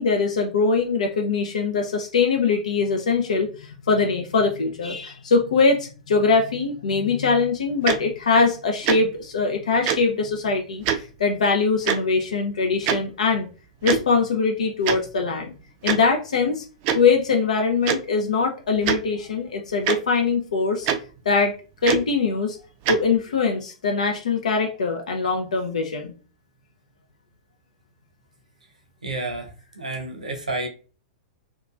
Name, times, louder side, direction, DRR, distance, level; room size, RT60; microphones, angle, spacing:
voice 1, 0.0-13.5 13.8-15.5 15.8-16.6 16.9-20.9 21.3-21.5 21.8-22.6 22.9-26.1, left 4 dB, 70° left, 0.4 m, -22 dB
Tick-tock, 7.9-8.0 8.8-9.0 9.9-10.0 10.8-11.0 11.9-12.0 12.9-13.0 13.8-14.0 14.9-15.0 15.9-16.0 16.8-17.0 17.9-18.0 18.8-19.0 19.9-20.0 20.9-21.0 21.8-22.0 22.9-23.0, right 8 dB, 40° right, 0.3 m, -22 dB
voice 2, 29.0-30.7, right 2 dB, 85° right, 0.7 m, -30 dB
2.8 x 2.3 x 2.4 m
figure-of-eight pair, 100°, 4 cm